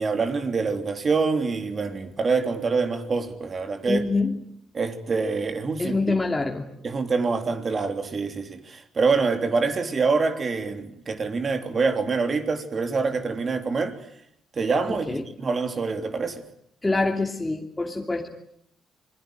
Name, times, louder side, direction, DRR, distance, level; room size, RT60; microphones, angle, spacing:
voice 1, 0.0-4.0 4.7-5.9 6.8-14.0 14.5-16.4, right 4 dB, 40° right, 3.4 m, -25 dB
voice 2, 3.9-4.4 5.8-6.7 14.9-15.2 16.8-18.3, left 3 dB, 15° left, 2.8 m, -25 dB
27.0 x 22.0 x 9.4 m
cardioid pair, 90°, 0 cm